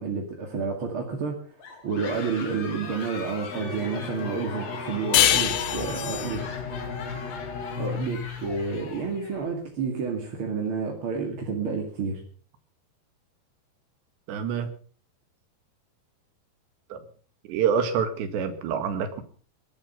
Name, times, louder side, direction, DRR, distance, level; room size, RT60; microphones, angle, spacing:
voice 1, 0.0-1.4 1.7-6.4 6.7-6.8 7.8-12.2, right 4 dB, 40° right, 1 dB, 2.3 m, -30 dB
sound 1, 1.6-9.4, left 5 dB, 45° left, 3.5 m, -40 dB
Bowed string instrument, 3.5-9.2, left 5 dB, 65° left, 5.4 m, -36 dB
sound 2, 5.1-8.3, left 12 dB, 90° left, 3.6 m, -25 dB
voice 2, 14.3-14.7 16.9-17.0 17.5-19.2, right 7 dB, 80° right, 9 dB, 3.9 m, -26 dB
20.5 x 11.5 x 5.8 m, 0.43 s
omnidirectional pair, 5.0 m